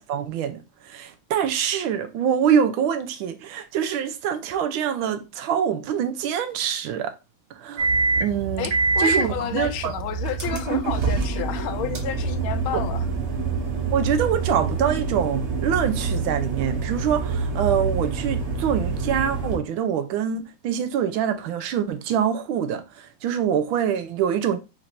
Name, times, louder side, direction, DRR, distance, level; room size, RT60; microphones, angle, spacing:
voice 1, 0.0-7.1 7.5-7.9 8.2-8.7 9.0-9.9 12.7-12.8 13.9-24.6, right 8 dB, 80° right, 1.4 m, -25 dB
sound 1, 7.8-19.6, right 4 dB, 50° right, 0.9 m, -26 dB
voice 2, 8.6-13.1, left 10 dB, 80° left, 1.4 m, -30 dB
4.4 x 4.3 x 2.5 m
omnidirectional pair, 2.3 m